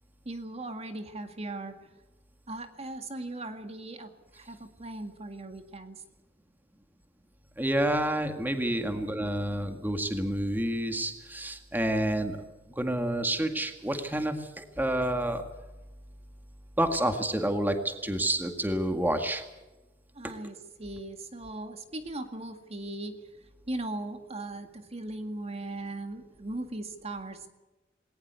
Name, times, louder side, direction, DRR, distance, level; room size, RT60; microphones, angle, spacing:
voice 1, 0.3-1.7 2.5-6.0 8.8-9.0 20.2-23.3 23.7-27.5, right 2 dB, 35° right, 7 dB, 1.9 m, -38 dB
voice 2, 7.6-12.4 12.8-15.4 16.8-19.4, right 1 dB, 10° right, 6 dB, 1.9 m, -29 dB
20.5 x 18.5 x 8.2 m, 1.1 s
head